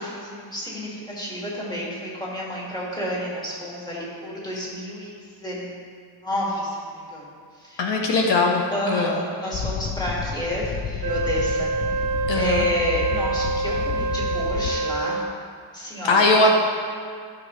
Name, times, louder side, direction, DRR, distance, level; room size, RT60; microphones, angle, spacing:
voice 1, 0.0-5.2 5.4-5.8 6.2-7.2 7.6-7.9 8.7-11.7 12.3-15.2 15.7-16.4, equal, 10° left, -6 dB, 2.2 m, -30 dB
voice 2, 7.8-9.1 12.3-12.7 16.0-16.5, left 2 dB, 80° left, 1 dB, 1.1 m, -20 dB
sound 1, 9.5-14.7, left 6 dB, 40° left, 0.9 m, -31 dB
Wind instrument woodwind instrument, 11.0-15.4, right 4 dB, 50° right, 0.5 m, -26 dB
14.0 x 6.2 x 3.2 m, 2.1 s
wide cardioid pair, 155°, 44 cm